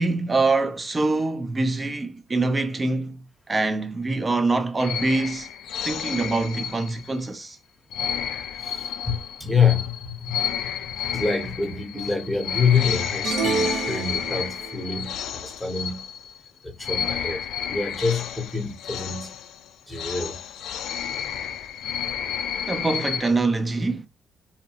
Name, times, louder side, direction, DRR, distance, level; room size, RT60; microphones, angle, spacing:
voice 1, 0.0-3.2 3.5-5.5 5.8-7.6 22.7-24.1, right 3 dB, 25° right, 0.6 m, -24 dB
sound 1, 4.8-7.3 7.9-16.5 16.8-23.3, left 8 dB, 80° left, 0.4 m, -31 dB
voice 2, 8.6-16.0 16.6-19.3 19.9-20.4, left 5 dB, 5° left, 0.9 m, -26 dB
sound 2, 13.2-14.8, right 5 dB, 70° right, 0.5 m, -27 dB
2.7 x 2.1 x 2.8 m
cardioid pair, 90°, 0 cm